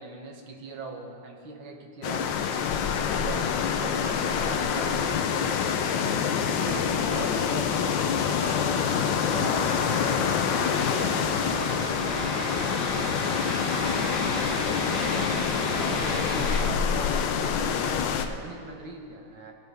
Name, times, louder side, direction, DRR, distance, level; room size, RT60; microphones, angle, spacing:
voice 1, 0.0-2.5 2.7-11.3 11.5-19.5, right 3 dB, 70° right, 2 dB, 1.8 m, -41 dB
sound 1, 2.0-18.3, left 7 dB, 70° left, 1.2 m, -26 dB
sound 2, 4.2-16.6, left 1 dB, 55° left, 3.1 m, -35 dB
18.5 x 9.2 x 3.5 m, 2.4 s
omnidirectional pair, 2.3 m